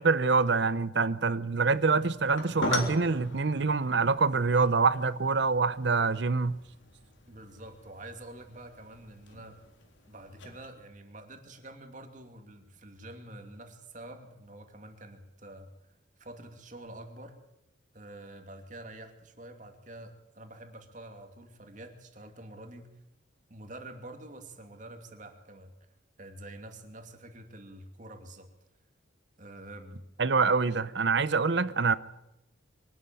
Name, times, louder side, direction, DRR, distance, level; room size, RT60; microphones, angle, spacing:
voice 1, 0.0-6.6 30.2-31.9, right 4 dB, 60° right, 0.7 m, -25 dB
sound 1, 1.7-10.7, left 2 dB, 70° left, 3.6 m, -41 dB
voice 2, 7.3-9.6 10.1-15.7 16.2-17.4 17.9-22.9 23.5-25.7 26.2-28.5 29.4-30.1, right 1 dB, 40° right, 2.7 m, -47 dB
23.5 x 12.5 x 9.2 m
head